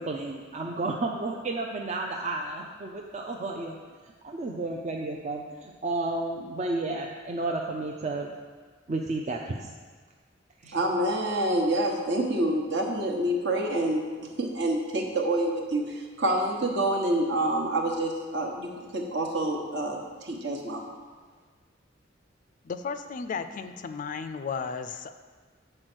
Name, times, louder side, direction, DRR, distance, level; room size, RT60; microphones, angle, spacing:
voice 1, 0.0-3.8 4.2-8.3 8.9-9.7 10.6-10.8, right 2 dB, 40° right, 0 dB, 0.5 m, -32 dB
voice 2, 10.6-20.8, right 1 dB, 65° right, 0 dB, 1.2 m, -27 dB
voice 3, 22.6-25.1, left 5 dB, 40° left, 10 dB, 0.3 m, -34 dB
7.8 x 4.4 x 6.1 m, 1.5 s
head